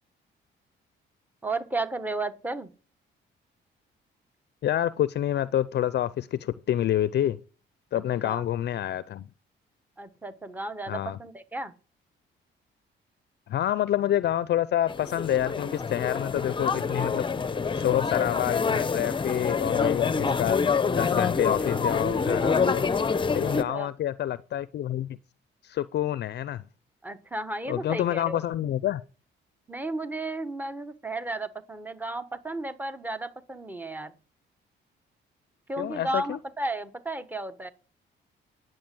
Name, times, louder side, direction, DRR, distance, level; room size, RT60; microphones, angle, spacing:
voice 1, 1.4-2.7 7.9-8.4 10.0-11.7 22.8-22.9 23.3-23.9 27.0-28.4 29.7-34.1 35.7-37.7, right 2 dB, 10° right, 1.2 m, -34 dB
voice 2, 4.6-7.4 7.9-9.3 10.9-11.2 13.5-17.3 17.7-20.6 20.9-22.8 23.3-25.2 25.6-26.6 27.7-29.0 35.8-36.4, left 12 dB, 60° left, 0.5 m, -28 dB
sound 1, 14.9-23.6, left 5 dB, 25° left, 0.7 m, -26 dB
10.5 x 7.6 x 7.7 m
cardioid pair, 90°, 20 cm